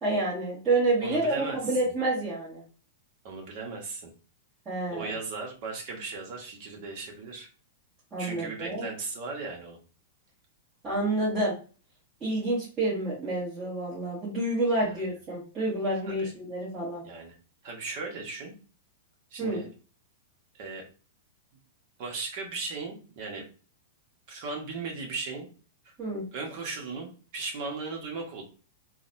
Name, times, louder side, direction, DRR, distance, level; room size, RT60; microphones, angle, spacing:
voice 1, 0.0-2.6 4.7-5.1 8.1-8.9 10.8-11.5 12.2-17.0 19.4-19.6 26.0-26.2, right 2 dB, 25° right, -9 dB, 1.6 m, -28 dB
voice 2, 1.0-1.6 1.8-1.9 3.2-4.1 4.9-7.5 8.2-9.8 14.8-15.0 16.1-16.3 17.0-17.3 17.6-18.5 19.3-19.7 20.5-20.8 22.0-23.5 24.3-25.5 25.8-25.9 26.3-28.4, right 4 dB, 50° right, 1 dB, 1.3 m, -37 dB
3.9 x 2.4 x 2.6 m, 0.36 s
hypercardioid pair, 145°, 0 cm